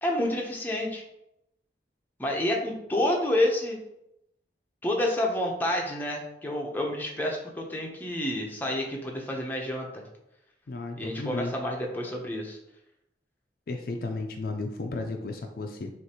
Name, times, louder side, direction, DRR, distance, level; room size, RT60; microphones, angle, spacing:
voice 1, 0.0-1.0 2.2-3.8 4.8-10.0 11.0-12.6, left 1 dB, 10° left, -1 dB, 0.6 m, -29 dB
voice 2, 10.7-11.5 13.7-15.9, left 2 dB, 55° left, 4 dB, 0.4 m, -34 dB
6.3 x 2.5 x 2.8 m, 0.82 s
head